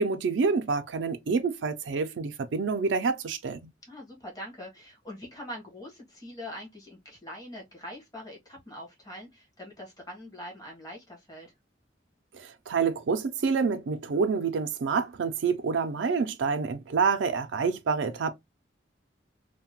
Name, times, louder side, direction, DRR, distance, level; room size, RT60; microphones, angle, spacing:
voice 1, 0.0-3.6 12.3-18.3, right 5 dB, 80° right, 0.4 m, -27 dB
voice 2, 3.8-11.5, equal, 20° left, 1.1 m, -43 dB
2.8 x 2.1 x 2.8 m
head